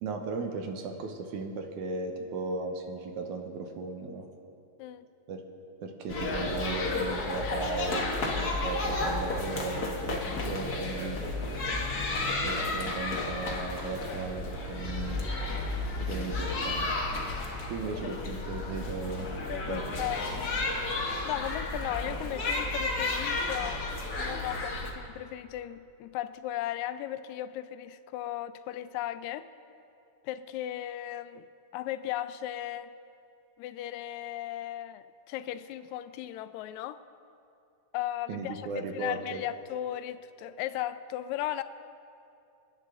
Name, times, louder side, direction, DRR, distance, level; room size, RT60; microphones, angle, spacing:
voice 1, 0.0-4.3 5.3-5.4 5.8-11.2 12.4-15.3 16.0-16.9 17.7-19.4 19.7-19.9 38.3-39.4, right 4 dB, 75° right, 4 dB, 2.4 m, -36 dB
sound 1, 6.1-24.9, left 2 dB, 50° left, 1.1 m, -32 dB
voice 2, 19.5-20.5 21.2-23.8 24.2-29.5 30.2-31.4 31.7-32.9 33.6-37.0 37.9-38.6 38.9-41.6, left 13 dB, 80° left, 12 dB, 1.7 m, -36 dB
29.0 x 9.8 x 3.8 m, 2.6 s
omnidirectional pair, 3.7 m